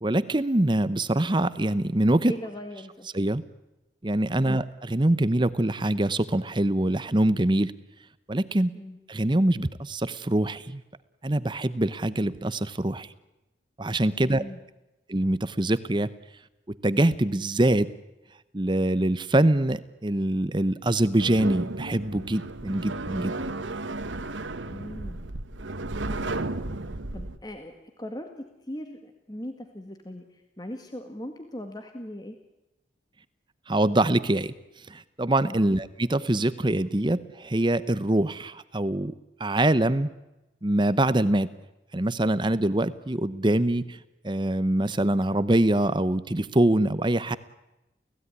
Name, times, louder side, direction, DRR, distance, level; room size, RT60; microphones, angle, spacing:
voice 1, 0.0-2.3 3.1-3.4 4.0-7.7 8.3-8.7 9.1-10.8 11.2-13.1 13.8-14.4 15.1-16.1 16.7-17.9 18.5-23.3 33.7-34.5 34.9-39.1 39.4-40.1 40.6-41.5 41.9-44.0 44.2-47.4, right 1 dB, 25° right, 15 dB, 0.8 m, -24 dB
voice 2, 2.3-3.1 8.7-9.0 14.2-14.6 24.7-25.2 26.1-26.6 27.1-32.4 35.4-35.7, left 1 dB, 20° left, 5 dB, 1.8 m, -39 dB
sound 1, 21.2-27.4, right 2 dB, 80° right, 1.4 m, -33 dB
30.0 x 16.5 x 9.7 m, 0.98 s
head